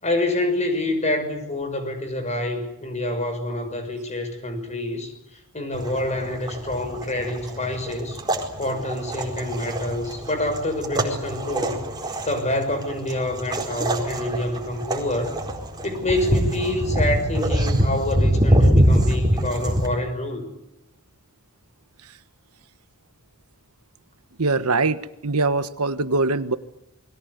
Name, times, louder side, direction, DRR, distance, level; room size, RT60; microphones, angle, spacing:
voice 1, 0.0-8.2 8.6-11.8 12.3-15.4 15.8-20.4, left 1 dB, 30° left, 8 dB, 6.1 m, -27 dB
sound 1, 5.7-19.9, equal, 20° right, 4.3 m, -24 dB
voice 2, 24.4-26.6, right 3 dB, 85° right, 12 dB, 1.3 m, -22 dB
28.5 x 22.5 x 8.3 m, 0.82 s
head